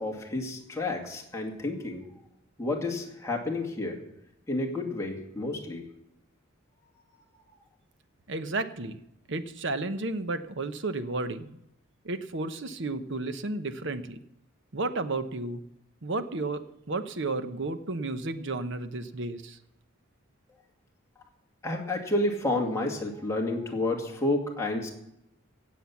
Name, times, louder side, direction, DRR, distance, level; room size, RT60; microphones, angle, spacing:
voice 1, 0.0-2.0 2.6-4.0 4.5-5.8 21.6-24.9, left 2 dB, 15° left, 0 dB, 2.4 m, -30 dB
voice 2, 8.3-9.0 9.3-11.6 12.0-14.2 14.7-15.6 16.0-19.6, right 2 dB, 60° right, 11 dB, 1.0 m, -32 dB
17.0 x 7.8 x 7.2 m, 0.82 s
head